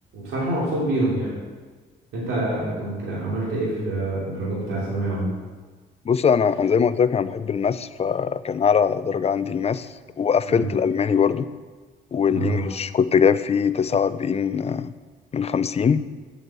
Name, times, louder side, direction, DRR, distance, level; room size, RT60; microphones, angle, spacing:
voice 1, 0.1-1.3 2.1-5.3 10.5-10.7 12.3-12.6, right 2 dB, 85° right, -6 dB, 3.1 m, -26 dB
voice 2, 6.1-9.9 10.2-11.5 12.1-14.9 15.3-16.0, left 6 dB, 30° left, 13 dB, 0.5 m, -21 dB
8.0 x 6.2 x 7.6 m, 1.4 s
cardioid pair, 90°, 20 cm